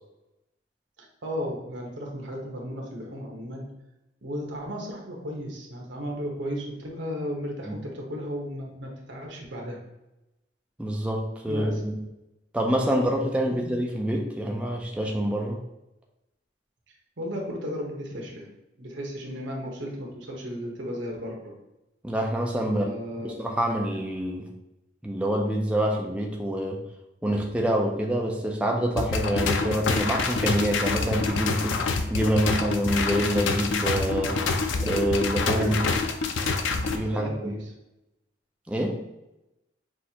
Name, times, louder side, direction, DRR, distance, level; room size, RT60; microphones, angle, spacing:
voice 1, 1.0-3.7 4.2-9.8 11.5-11.8 13.5-13.6 17.2-18.5 18.8-21.6 22.7-23.3 35.5-35.9 37.1-37.7, equal, 75° right, 0 dB, 1.1 m, -35 dB
voice 2, 10.8-12.0 12.5-15.6 22.0-23.0 23.2-24.5 25.0-26.8 27.2-31.8 32.1-34.4 34.8-35.8 36.9-37.5 38.7-39.0, right 1 dB, 5° right, -1 dB, 0.4 m, -26 dB
sound 1, 29.0-37.0, left 4 dB, 90° left, 0.5 m, -26 dB
6.1 x 2.5 x 2.9 m, 0.93 s
head